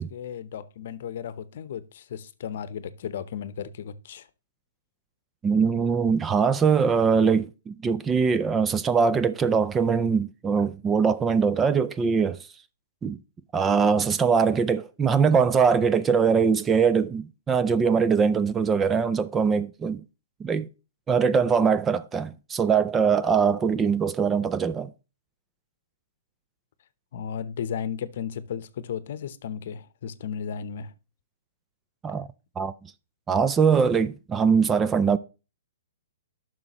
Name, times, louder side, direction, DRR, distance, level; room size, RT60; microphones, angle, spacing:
voice 1, 0.0-4.3 27.1-30.9, left 8 dB, 60° left, 0.8 m, -35 dB
voice 2, 5.4-12.4 13.0-13.2 13.5-20.0 20.4-20.7 21.1-24.9 32.0-32.3 32.6-32.7 33.3-35.2, right 6 dB, 15° right, 0.4 m, -22 dB
11.0 x 6.2 x 3.0 m
hypercardioid pair, 135°, 0 cm